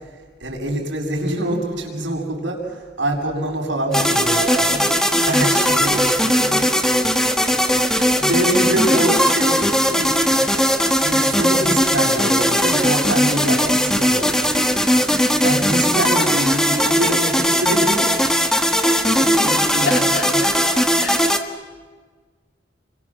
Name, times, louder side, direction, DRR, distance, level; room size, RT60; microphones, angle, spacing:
voice 1, 0.4-4.9 5.2-6.7 7.7-7.9 8.2-10.5 11.0-14.7 15.4-18.2 18.8-20.4, right 1 dB, 85° right, 0 dB, 7.5 m, -25 dB
sound 1, 3.9-21.4, equal, 5° left, 1.6 m, -18 dB
voice 2, 19.8-21.2, left 3 dB, 70° left, 3 dB, 3.4 m, -29 dB
30.0 x 24.5 x 7.6 m, 1.5 s
head